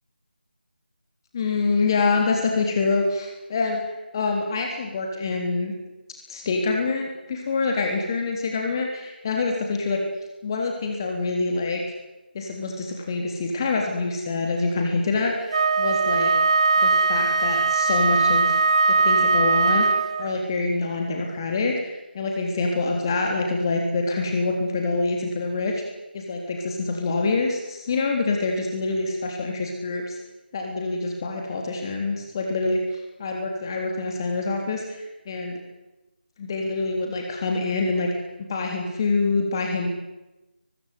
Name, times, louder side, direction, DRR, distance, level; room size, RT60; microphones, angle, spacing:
voice 1, 1.3-3.8 4.1-5.7 6.3-10.0 10.4-11.8 12.3-16.3 16.8-18.6 18.9-21.7 22.1-25.8 26.1-30.2 30.5-35.5 36.4-38.1 38.4-39.9, left 3 dB, 25° left, 2 dB, 3.4 m, -26 dB
Wind instrument woodwind instrument, 15.5-20.4, right 4 dB, 35° right, 1.3 m, -20 dB
23.0 x 21.0 x 9.6 m, 1.0 s
figure-of-eight pair, 160°, 6 cm